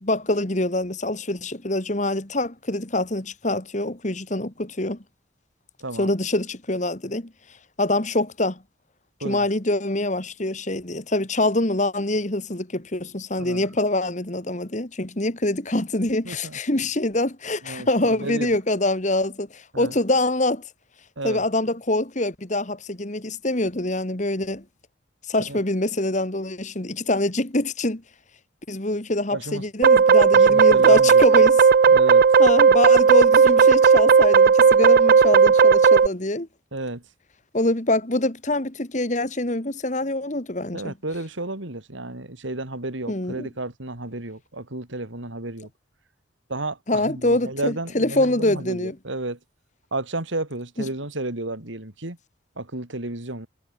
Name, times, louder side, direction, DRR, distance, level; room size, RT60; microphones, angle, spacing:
voice 1, 0.0-5.0 6.0-7.3 7.8-8.6 9.2-20.6 21.2-24.6 25.3-28.0 28.7-31.6 32.4-36.5 37.5-40.9 43.1-43.5 46.9-49.0, left 2 dB, 40° left, 1.9 m, -25 dB
voice 2, 16.2-16.6 17.6-18.5 19.7-19.9 21.2-21.5 25.5-25.6 29.3-29.6 30.3-31.2 31.9-32.3 36.7-37.0 40.7-45.7 46.5-49.4 49.9-52.2 52.6-53.5, right 2 dB, 75° right, 3.0 m, -32 dB
sound 1, 29.8-36.1, right 6 dB, 45° right, 0.3 m, -14 dB
head